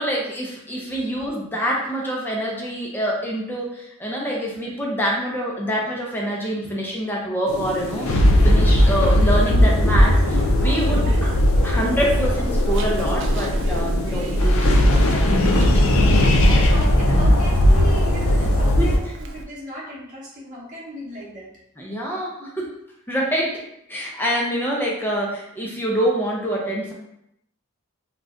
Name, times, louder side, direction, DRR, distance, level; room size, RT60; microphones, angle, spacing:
voice 1, 0.0-11.3 11.6-15.8 16.4-16.5 18.8-18.9 21.8-22.7 23.1-23.6 23.9-26.9, equal, 10° left, -2 dB, 0.4 m, -26 dB
sound 1, 7.5-19.0, left 1 dB, 70° left, 0.4 m, -18 dB
Zipper (clothing), 7.7-19.4, right 1 dB, 60° right, 0.4 m, -28 dB
voice 2, 8.3-8.8 16.1-21.5, right 1 dB, 35° right, -6 dB, 0.8 m, -36 dB
2.5 x 2.2 x 3.6 m, 0.78 s
head